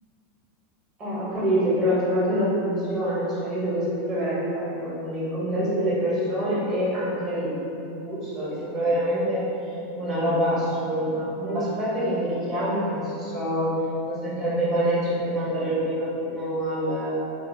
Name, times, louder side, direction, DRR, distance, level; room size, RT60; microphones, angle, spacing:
voice 1, 1.0-13.7 14.1-17.2, equal, 30° right, -9 dB, 1.1 m, -26 dB
2.7 x 2.6 x 2.6 m, 2.9 s
figure-of-eight pair, 85°, 0 cm